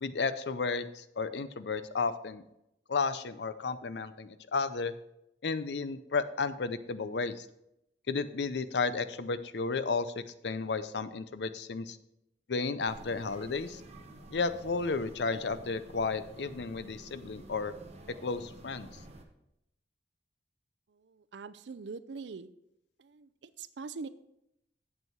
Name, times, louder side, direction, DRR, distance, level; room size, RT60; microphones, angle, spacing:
voice 1, 0.0-2.4 2.9-4.9 5.4-7.5 8.1-12.0 12.5-13.8 14.3-17.7 18.2-18.9, left 4 dB, 75° left, 13 dB, 0.6 m, -33 dB
sound 1, 12.9-19.2, right 1 dB, 40° right, 1.2 m, -51 dB
voice 2, 20.9-22.5 23.0-24.1, right 4 dB, 85° right, 14 dB, 0.5 m, -43 dB
8.1 x 7.6 x 4.6 m, 0.82 s
head